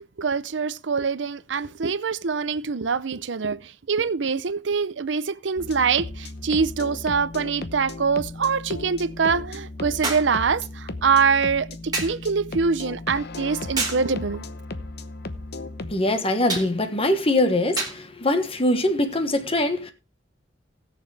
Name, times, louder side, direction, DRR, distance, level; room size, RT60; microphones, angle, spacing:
voice 1, 0.2-14.4, right 5 dB, 65° right, 0.6 m, -24 dB
sound 1, 5.6-15.9, left 2 dB, 55° left, 0.9 m, -36 dB
sound 2, 6.2-6.3 10.0-10.4 11.9-12.2 13.8-14.1 16.5-16.7 17.8-18.0 19.1-19.2, right 3 dB, 20° right, 2.8 m, -28 dB
voice 2, 15.9-19.9, left 1 dB, 30° left, 1.2 m, -23 dB
19.5 x 6.9 x 3.3 m
head